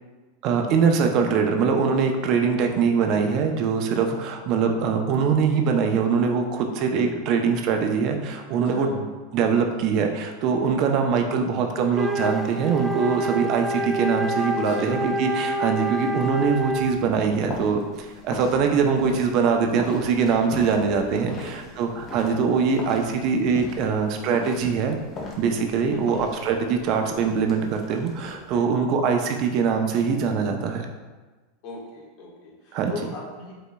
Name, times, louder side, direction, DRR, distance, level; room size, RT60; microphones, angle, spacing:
voice 1, 0.4-9.1 9.3-25.0 25.4-30.9 32.7-32.9, right 5 dB, 50° right, 4 dB, 0.6 m, -23 dB
voice 2, 8.7-9.0 14.5-15.1 20.0-20.5 21.2-21.8 25.9-26.3 28.5-28.7 31.6-33.5, left 3 dB, 55° left, -3 dB, 1.4 m, -39 dB
Wind instrument woodwind instrument, 11.9-17.1, right 1 dB, 5° right, 0.3 m, -27 dB
sound 1, 16.3-28.6, left 2 dB, 30° left, 0.9 m, -40 dB
5.1 x 3.8 x 2.3 m, 1.3 s
hypercardioid pair, 110°, 0 cm